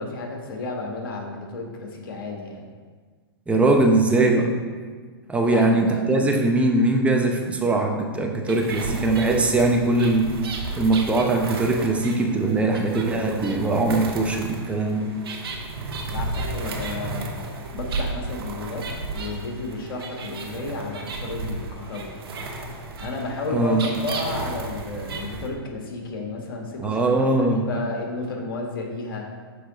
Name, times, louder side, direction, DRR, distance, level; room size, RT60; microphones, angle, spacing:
voice 1, 0.0-2.7 5.4-6.3 16.1-22.1 23.0-29.3, left 3 dB, 60° left, 1 dB, 1.5 m, -32 dB
voice 2, 3.5-4.5 5.3-10.3 10.8-15.1 23.5-23.8 26.8-27.7, right 2 dB, 10° right, 1 dB, 0.8 m, -21 dB
sound 1, 8.5-25.5, right 3 dB, 70° right, 1.0 m, -33 dB
6.5 x 4.6 x 4.0 m, 1.5 s
hypercardioid pair, 120°, 13 cm